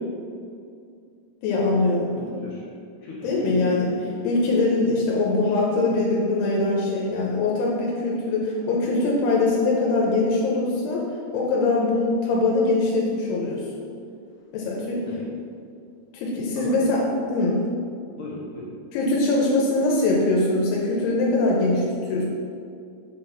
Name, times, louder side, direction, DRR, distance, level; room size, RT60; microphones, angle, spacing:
voice 1, 1.4-2.3 3.2-3.9 4.2-11.0 11.3-13.8 14.5-15.1 16.1-17.0 17.3-17.6 18.9-22.2, left 2 dB, 85° left, -3 dB, 2.8 m, -22 dB
voice 2, 2.1-4.0 15.1-15.2 16.6-16.8 18.2-18.7, left 2 dB, 65° left, -6 dB, 2.1 m, -39 dB
7.3 x 4.1 x 5.6 m, 2.4 s
omnidirectional pair, 4.7 m